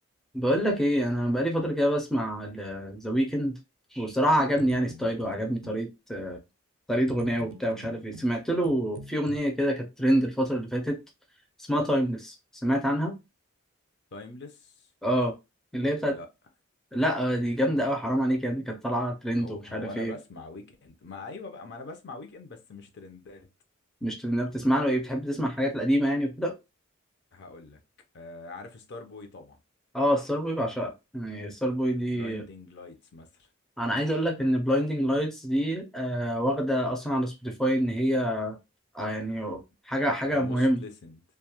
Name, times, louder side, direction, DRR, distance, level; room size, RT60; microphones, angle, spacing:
voice 1, 0.3-3.6 3.9-6.4 6.9-11.0 11.7-12.4 12.6-13.2 15.0-15.3 15.7-16.2 16.9-20.1 24.0-26.5 29.9-32.5 33.8-38.6 38.9-40.8, equal, ahead, 0.4 m, -27 dB
sound 1, 4.4-5.9 7.1-9.4, right 2 dB, 80° right, 0.4 m, -46 dB
voice 2, 14.1-14.9 16.1-16.3 19.4-23.5 27.3-27.8 28.1-29.6 31.9-33.5 40.3-41.2, left 3 dB, 60° left, 0.5 m, -43 dB
2.2 x 2.0 x 2.8 m
head